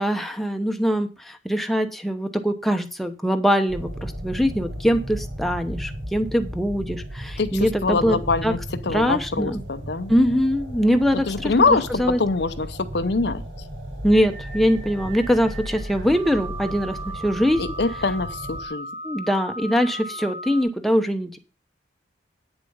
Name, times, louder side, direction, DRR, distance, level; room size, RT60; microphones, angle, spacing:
voice 1, 0.0-8.2 8.4-8.5 8.9-9.6 10.1-11.5 12.0-12.2 14.0-17.6 19.0-21.4, equal, ahead, 5 dB, 0.8 m, -22 dB
sound 1, 3.7-18.7, equal, 90° right, 5.0 m, -35 dB
voice 2, 7.4-10.1 11.1-13.4 17.6-18.9, left 4 dB, 60° left, 11 dB, 0.7 m, -24 dB
sound 2, 14.1-20.6, right 2 dB, 35° right, 2.3 m, -37 dB
9.1 x 7.0 x 5.5 m, 0.33 s
head